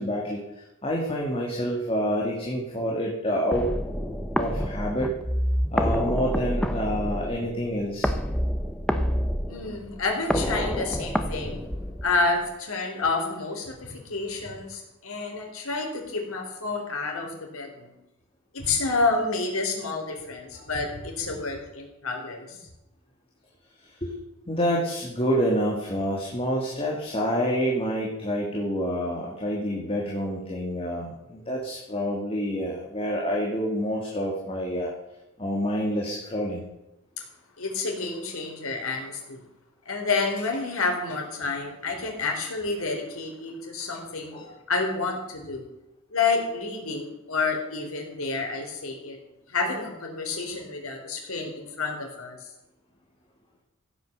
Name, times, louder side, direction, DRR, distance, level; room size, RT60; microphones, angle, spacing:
voice 1, 0.0-3.7 4.4-5.1 5.7-8.1 20.5-20.6 24.0-24.1 24.5-34.9 35.4-36.6 44.3-44.6, equal, 25° left, -2 dB, 2.6 m, -28 dB
sound 1, 3.5-12.5, equal, 5° left, 0.9 m, -28 dB
voice 2, 9.5-11.6 12.0-17.9 18.5-22.6 37.2-37.3 37.6-39.4 39.9-44.3 44.7-45.7 46.1-49.2 49.5-52.5, left 3 dB, 90° left, 2 dB, 4.0 m, -29 dB
15.5 x 9.1 x 6.8 m, 0.93 s
head